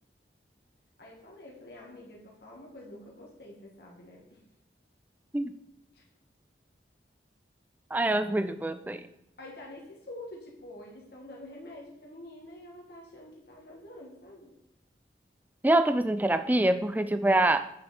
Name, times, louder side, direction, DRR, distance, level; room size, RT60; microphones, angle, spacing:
voice 1, 1.0-4.4 5.9-6.0 9.4-14.5, left 1 dB, 60° left, -3 dB, 2.1 m, -47 dB
voice 2, 7.9-9.1 15.6-17.7, right 1 dB, 10° right, 10 dB, 0.3 m, -25 dB
8.8 x 7.0 x 4.3 m, 0.80 s
head